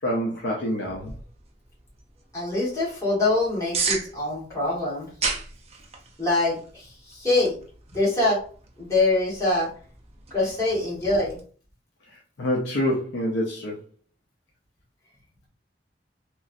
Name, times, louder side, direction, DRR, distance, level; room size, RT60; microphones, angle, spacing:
voice 1, 0.0-1.1 12.1-13.8, equal, 85° left, -2 dB, 0.6 m, -27 dB
sound 1, 0.8-11.4, right 4 dB, 35° right, 0.5 m, -36 dB
voice 2, 2.3-5.1 6.2-7.5 7.9-8.4 8.8-9.7 10.3-11.4, left 2 dB, 20° left, -7 dB, 1.4 m, -24 dB
3.0 x 2.4 x 2.6 m, 0.42 s
head